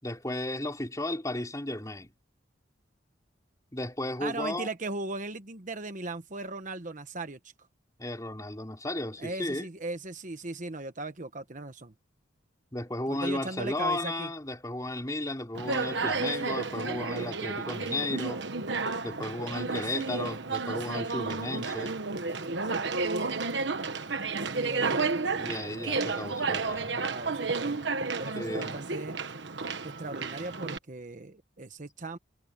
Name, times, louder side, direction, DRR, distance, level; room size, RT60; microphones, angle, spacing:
voice 1, 0.0-2.1 3.7-4.7 8.0-9.7 12.7-18.4 19.0-21.9 25.3-26.9 28.3-28.8, left 1 dB, 15° left, 3.5 m, -34 dB
voice 2, 4.2-7.4 9.2-11.9 13.1-14.3 24.5-25.1 26.9-27.9 28.2-29.2 29.8-32.2, right 2 dB, 40° right, 1.1 m, -38 dB
Conversation, 15.5-30.8, right 4 dB, 60° right, 1.3 m, -32 dB
head